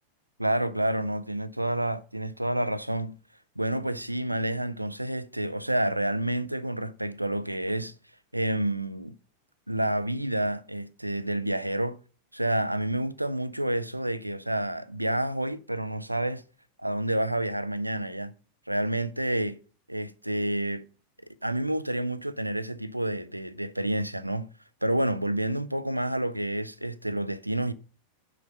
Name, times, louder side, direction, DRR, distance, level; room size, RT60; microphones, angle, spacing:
voice 1, 0.4-3.2 3.6-7.9 8.3-9.1 9.7-12.0 12.3-16.4 16.8-18.3 18.7-19.6 19.9-20.8 21.4-24.5 24.8-27.7, right 1 dB, 85° right, 0.4 m, -29 dB
6.4 x 5.2 x 5.3 m
figure-of-eight pair, 90°, 0 cm